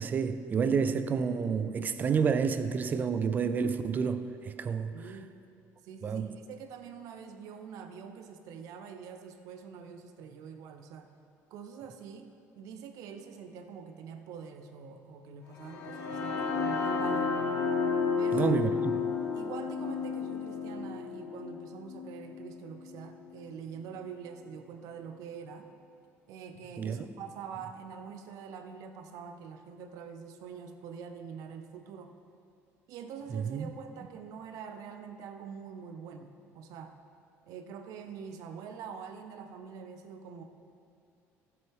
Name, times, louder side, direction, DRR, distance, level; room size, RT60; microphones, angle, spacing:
voice 1, 0.0-4.9 6.0-6.4 18.3-18.7 19.0-19.1 26.8-27.1 33.3-33.7, right 6 dB, 30° right, 0.5 m, -29 dB
voice 2, 4.9-5.4 5.8-11.1 11.5-17.4 18.2-18.5 19.3-25.7 26.3-32.1 32.9-37.0 37.5-40.4, right 6 dB, 75° right, 0.8 m, -45 dB
sound 1, 15.6-23.5, left 5 dB, 55° left, 1.4 m, -32 dB
15.5 x 7.7 x 3.6 m
cardioid pair, 140°, 6 cm